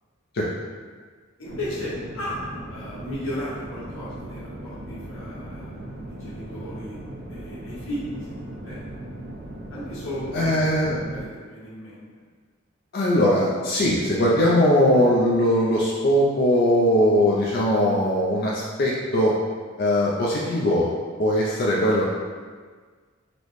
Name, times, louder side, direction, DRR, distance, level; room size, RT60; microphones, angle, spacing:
voice 1, 1.4-2.4 2.7-7.0 7.3-9.0 9.7-12.3, left 1 dB, 80° left, -9 dB, 1.2 m, -35 dB
sound 1, 1.4-11.2, right 1 dB, 50° right, 0.5 m, -38 dB
voice 2, 10.3-11.0 12.9-19.4 19.8-20.9 21.2-22.0, equal, 50° left, -5 dB, 0.4 m, -20 dB
4.0 x 2.1 x 3.1 m, 1.6 s
head